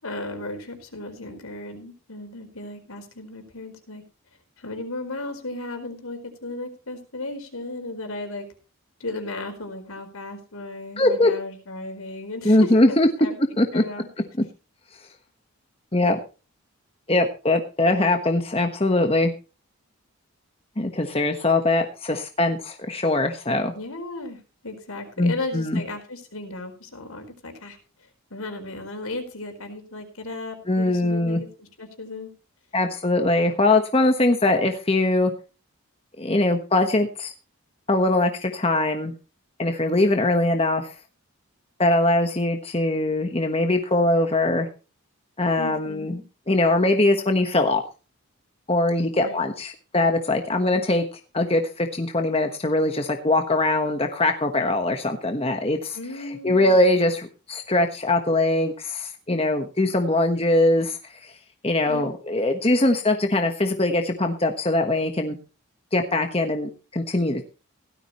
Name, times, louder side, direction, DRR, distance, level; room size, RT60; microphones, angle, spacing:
voice 1, 0.0-4.0 4.6-8.5 9.0-13.3 13.7-14.1 23.7-27.8 28.3-32.3 45.6-46.2 49.2-49.4 55.9-56.8 61.9-62.0, left 2 dB, 75° left, 5 dB, 4.5 m, -35 dB
voice 2, 11.0-11.3 12.4-13.1 13.6-13.8 15.9-16.2 17.1-19.3 20.8-23.7 25.2-25.8 30.7-31.4 32.7-35.3 36.2-37.3 37.9-39.1 39.6-40.9 41.8-44.7 45.4-46.2 46.5-47.8 48.7-61.4 61.6-65.4 65.9-67.4, left 2 dB, 25° left, 5 dB, 1.2 m, -22 dB
17.0 x 13.0 x 3.1 m, 0.33 s
head